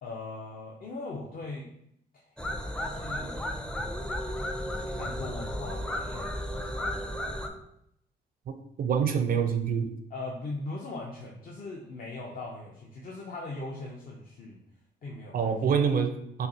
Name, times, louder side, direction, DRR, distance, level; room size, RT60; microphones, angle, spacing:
voice 1, 0.0-1.7 2.1-2.2 2.8-3.4 4.9-7.1 10.1-14.6 15.0-15.5, left 2 dB, 55° left, -2 dB, 0.6 m, -40 dB
sound 1, 2.4-7.5, equal, 5° left, 0.4 m, -34 dB
voice 2, 8.5-9.9 15.3-16.5, right 6 dB, 55° right, 7 dB, 0.4 m, -26 dB
5.5 x 2.0 x 2.7 m, 0.75 s
cardioid pair, 85°, 18 cm